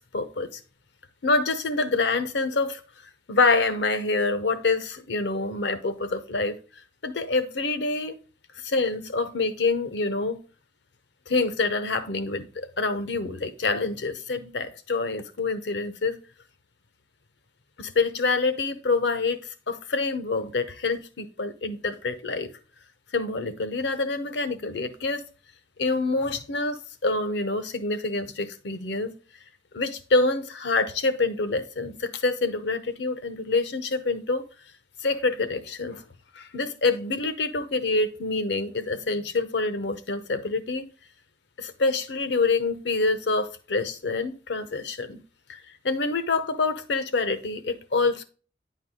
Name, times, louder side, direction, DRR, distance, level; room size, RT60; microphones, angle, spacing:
voice 1, 0.1-0.6 1.2-2.8 3.3-6.6 7.0-8.2 8.6-10.4 11.3-16.2 17.8-19.4 19.7-22.5 23.1-25.2 25.8-29.1 29.7-34.4 35.0-36.0 36.3-40.9 41.6-45.2 45.5-48.2, left 3 dB, 80° left, 0.8 m, -26 dB
9.6 x 4.6 x 3.6 m
head